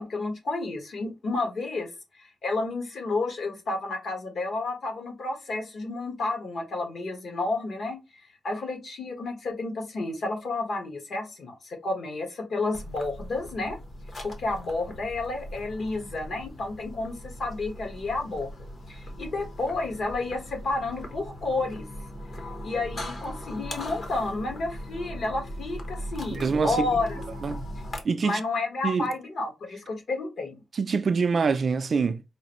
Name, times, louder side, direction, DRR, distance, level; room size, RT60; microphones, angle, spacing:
voice 1, 0.0-1.9 2.2-8.0 8.4-13.8 14.2-18.5 18.9-21.8 22.6-27.2 28.2-30.6, left 3 dB, 55° left, 1.3 m, -31 dB
sound 1, 12.7-28.0, equal, 40° left, 0.9 m, -39 dB
voice 2, 26.3-26.9 27.4-27.6 28.0-28.4 28.8-29.1 30.7-32.2, right 5 dB, 40° right, 0.3 m, -25 dB
4.9 x 2.6 x 3.0 m
wide cardioid pair, 170°, 0 cm